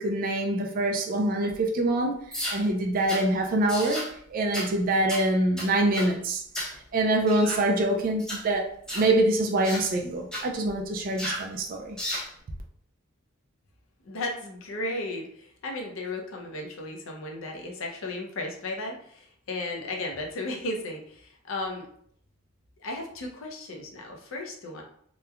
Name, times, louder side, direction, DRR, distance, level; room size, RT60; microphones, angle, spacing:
voice 1, 0.0-2.2 2.5-4.0 4.3-6.4 6.9-12.0, right 1 dB, 45° right, 0.3 m, -25 dB
sound 1, 2.3-2.6 3.1-3.3 3.7-4.1 4.5-4.7 5.1-5.3 5.6-6.1 6.5-6.8 7.3-7.6 8.2-8.4 8.9-9.1 9.6-9.9 10.3-10.5 11.2-11.5 12.0-12.3, equal, 5° left, 0.7 m, -33 dB
voice 2, 14.0-21.9 22.8-24.8, left 2 dB, 85° left, 0.6 m, -35 dB
3.0 x 2.1 x 2.3 m
head